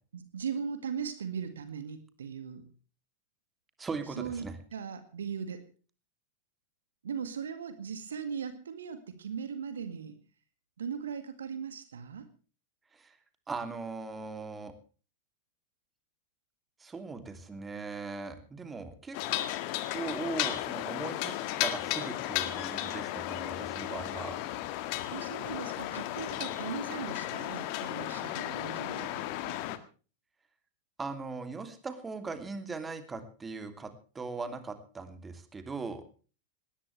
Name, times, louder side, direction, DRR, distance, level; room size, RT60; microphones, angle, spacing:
voice 1, 0.1-2.6 4.2-5.7 7.0-10.2 10.8-12.3 25.1-29.6, right 7 dB, 65° right, 10 dB, 2.0 m, -39 dB
voice 2, 3.8-4.6 12.9-13.2 13.5-14.7 16.8-19.2 19.9-21.3 21.6-24.4 31.0-36.0, right 4 dB, 15° right, 9 dB, 2.8 m, -39 dB
sound 1, 19.1-29.8, left 14 dB, 45° left, 1.7 m, -34 dB
19.5 x 18.5 x 3.3 m, 0.37 s
figure-of-eight pair, 90°, 0 cm